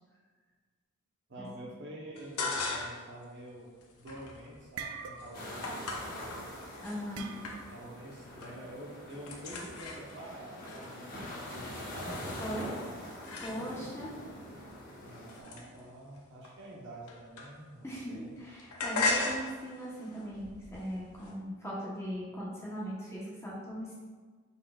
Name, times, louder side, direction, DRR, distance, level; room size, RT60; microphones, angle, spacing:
voice 1, 1.3-3.7 4.0-6.5 7.7-12.4 12.7-12.9 13.5-13.9 15.0-18.3, right 1 dB, 55° right, -3 dB, 0.9 m, -47 dB
sound 1, 2.2-3.1 3.5-7.0 7.4-8.0 8.2-8.7 8.9-14.0 14.6-17.9 18.1-21.3, left 3 dB, 85° left, 0.7 m, -39 dB
sound 2, 3.9-4.2 4.5-5.6 5.9-6.1 7.1-7.8, right 6 dB, 75° right, 0.3 m, -43 dB
sound 3, 5.3-15.4, left 1 dB, 40° left, 0.9 m, -44 dB
voice 2, 6.8-7.3 12.3-12.7 13.4-14.1 15.6-15.7 17.8-24.0, equal, 10° left, -7 dB, 0.8 m, -39 dB
4.7 x 4.1 x 2.3 m, 1.5 s
head